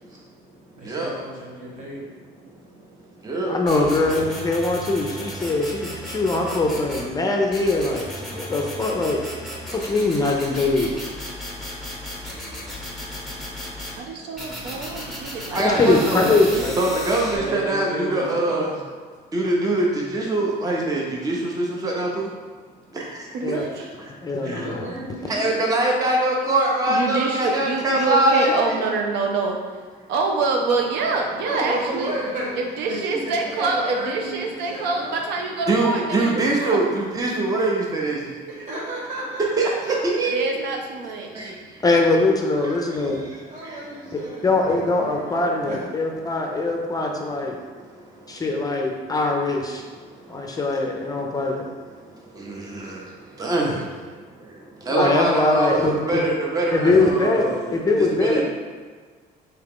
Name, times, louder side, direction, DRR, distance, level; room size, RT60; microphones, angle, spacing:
voice 1, 0.8-2.0 17.2-18.6 24.4-25.6 31.4-32.5 32.8-35.1 38.4-40.0 42.4-42.9 43.5-45.8 53.6-53.9, right 1 dB, 50° right, -5 dB, 1.4 m, -33 dB
voice 2, 3.5-9.2 9.7-10.9 15.8-16.8 23.4-23.7 24.2-24.8 41.8-43.2 44.4-47.6 48.3-49.8 50.3-51.7 54.9-56.2 56.7-58.4, left 2 dB, 20° left, 1 dB, 0.5 m, -22 dB
sound 1, 3.7-7.1 7.5-14.0 14.4-17.4, equal, ahead, 1.0 m, -35 dB
voice 3, 13.9-16.7 23.3-23.8 26.9-29.6 30.1-32.1 32.6-36.8 40.3-41.6, right 3 dB, 85° right, 2 dB, 0.5 m, -26 dB
voice 4, 15.5-16.2 16.8-18.7 19.3-22.3 22.9-23.0 24.5-24.7 25.3-28.8 35.7-38.4 39.6-40.6 41.4-41.5 52.5-53.0 53.4-53.7 54.9-58.5, right 2 dB, 20° right, -2 dB, 0.7 m, -23 dB
3.6 x 2.9 x 3.6 m, 1.5 s
cardioid pair, 110°, 17 cm